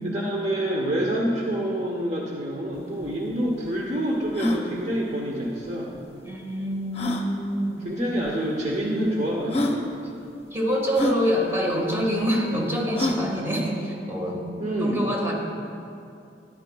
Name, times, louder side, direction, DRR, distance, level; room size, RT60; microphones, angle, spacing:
voice 1, 0.0-5.9 7.8-9.8 14.6-15.1, right 1 dB, 40° right, -2 dB, 0.8 m, -27 dB
sound 1, 2.8-2.9 3.0-3.1 3.7-3.8 4.3-4.6 6.0-6.1 6.9-7.3 8.3-8.4 9.1-9.2 9.5-9.8 10.9-11.2 12.9-13.3, left 1 dB, 35° left, 0.7 m, -26 dB
voice 2, 6.2-7.8 10.5-14.4 14.8-15.3, equal, 15° right, -2 dB, 1.5 m, -26 dB
13.0 x 11.0 x 2.3 m, 2.5 s
head